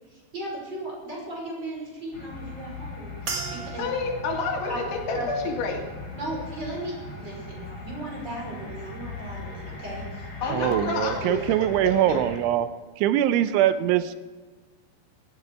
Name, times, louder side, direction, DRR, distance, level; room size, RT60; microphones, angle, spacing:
voice 1, 0.1-3.9 4.7-4.8 5.1-5.3 6.1-10.7, right 1 dB, 25° right, -2 dB, 6.1 m, -36 dB
sound 1, 2.1-12.4, left 2 dB, 35° left, 4.2 m, -39 dB
sound 2, 3.3-7.8 8.1-8.8 9.4-9.6, right 4 dB, 45° right, 1.5 m, -41 dB
voice 2, 3.8-5.8 10.4-12.2, left 4 dB, 75° left, 2 dB, 4.5 m, -29 dB
voice 3, 10.5-12.7 13.0-14.2, right 12 dB, 90° right, 12 dB, 3.2 m, -23 dB
18.0 x 15.0 x 4.8 m, 1.4 s
omnidirectional pair, 5.4 m